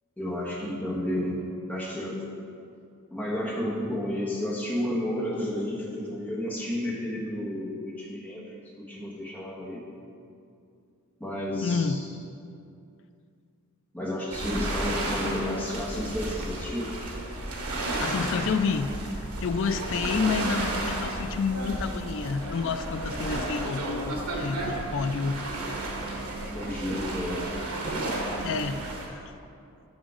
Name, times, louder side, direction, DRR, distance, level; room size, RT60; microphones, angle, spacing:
voice 1, 0.2-1.4 1.7-2.2 3.1-9.9 11.2-12.1 13.9-16.9 26.5-27.5, left 1 dB, 5° left, -4 dB, 1.1 m, -31 dB
voice 2, 11.6-12.0 18.0-18.9 19.4-25.4 28.4-28.8 29.1-29.2, left 5 dB, 55° left, 10 dB, 0.3 m, -29 dB
sound 1, 14.3-29.1, right 2 dB, 90° right, 1.2 m, -32 dB
6.2 x 6.2 x 4.9 m, 2.5 s
head